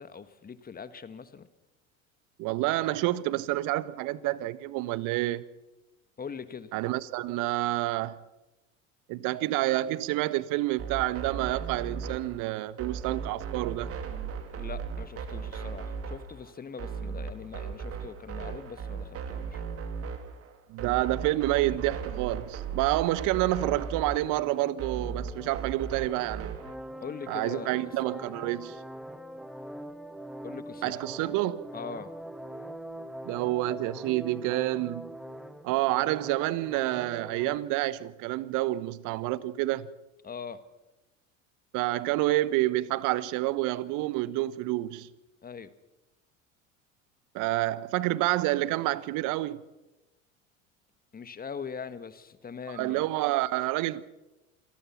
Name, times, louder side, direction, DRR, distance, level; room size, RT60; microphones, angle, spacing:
voice 1, 0.0-1.5 6.2-6.7 14.5-19.6 27.0-27.7 30.4-30.9 31.7-32.1 40.2-40.6 45.4-45.7 51.1-53.1, left 6 dB, 20° left, 1.7 m, -41 dB
voice 2, 2.4-5.5 6.7-8.2 9.1-13.9 20.7-26.5 27.3-28.8 30.8-31.7 33.2-35.1 35.6-39.9 41.7-45.1 47.3-49.7 52.7-54.0, right 17 dB, 50° right, 1.3 m, -28 dB
sound 1, 10.8-26.8, right 6 dB, 35° right, 2.9 m, -37 dB
sound 2, 23.6-37.6, right 1 dB, ahead, 1.5 m, -43 dB
27.0 x 19.0 x 5.9 m
figure-of-eight pair, 75°, 40 cm